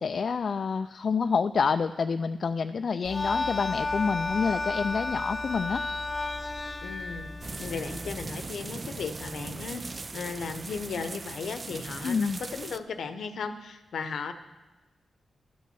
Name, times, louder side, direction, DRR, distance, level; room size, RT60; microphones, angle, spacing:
voice 1, 0.0-5.8 12.0-12.4, left 5 dB, 65° left, 10 dB, 0.4 m, -28 dB
sound 1, 3.0-8.3, left 3 dB, 35° left, 0.8 m, -32 dB
voice 2, 6.8-7.3 7.6-9.8 10.1-14.3, left 5 dB, 80° left, 9 dB, 0.9 m, -36 dB
sound 2, 7.4-12.8, right 3 dB, 45° right, 0.5 m, -39 dB
12.5 x 6.5 x 6.9 m, 1.1 s
cardioid pair, 55°, 0 cm